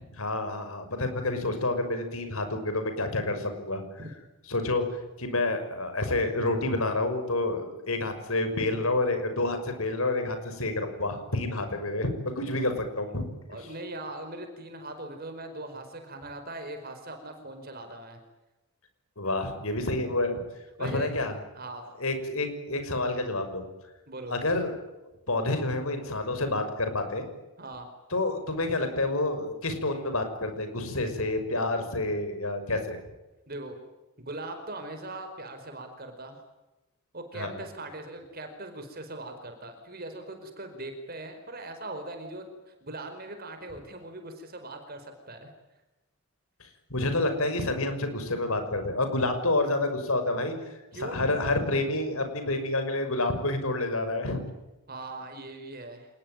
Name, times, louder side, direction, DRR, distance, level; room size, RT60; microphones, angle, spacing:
voice 1, 0.2-3.8 4.5-12.1 12.4-13.2 19.2-20.4 20.8-21.3 22.0-23.6 24.3-24.7 25.3-27.3 28.1-33.0 37.3-37.6 46.6-50.5 51.0-54.4, left 2 dB, 70° left, 8 dB, 6.0 m, -28 dB
voice 2, 13.5-18.2 20.8-21.1 21.5-21.9 24.1-24.3 27.6-27.9 33.5-33.8 34.2-36.4 37.1-45.5 50.9-51.2 54.9-56.1, right 2 dB, 40° right, 6 dB, 4.8 m, -40 dB
27.5 x 21.0 x 9.2 m, 1.0 s
head